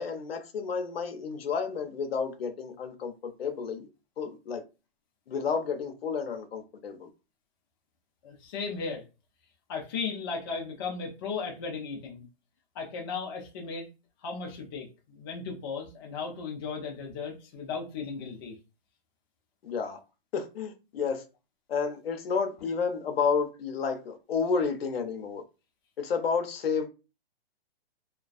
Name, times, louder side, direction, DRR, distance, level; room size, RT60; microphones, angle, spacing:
voice 1, 0.0-3.9 4.2-4.6 5.3-7.1 19.6-20.0 20.3-21.2 21.7-25.4 26.0-26.9, left 5 dB, 70° left, 0.7 m, -31 dB
voice 2, 8.2-9.0 9.7-12.3 12.7-13.9 14.2-18.5, left 5 dB, 25° left, 0.4 m, -36 dB
2.3 x 2.3 x 2.4 m
hypercardioid pair, 145°, 31 cm